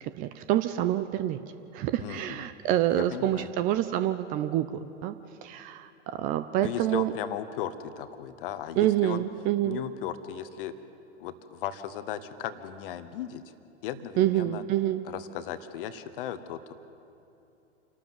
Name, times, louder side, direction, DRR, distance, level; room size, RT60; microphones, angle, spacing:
voice 1, 0.0-1.4 1.7-4.7 5.0-5.1 5.4-7.1 8.8-9.8 14.2-15.0, right 13 dB, 25° right, 11 dB, 0.5 m, -27 dB
voice 2, 2.0-2.5 2.9-3.5 6.6-9.2 9.6-10.7 11.2-13.4 13.8-14.6 15.0-16.7, left 10 dB, 45° left, 12 dB, 1.3 m, -36 dB
28.0 x 12.0 x 7.8 m, 2.7 s
figure-of-eight pair, 100°, 36 cm